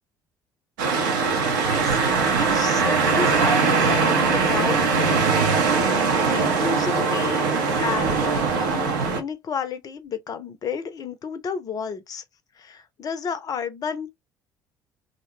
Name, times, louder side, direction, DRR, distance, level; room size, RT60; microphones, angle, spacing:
sound 1, 0.8-9.2, right 4 dB, 70° right, 0.6 m, -21 dB
voice 1, 1.4-2.0 2.4-4.9 6.3-7.5 7.8-12.2 12.6-14.1, left 6 dB, 35° left, 0.5 m, -31 dB
2.5 x 2.0 x 2.9 m
figure-of-eight pair, 55°, 11 cm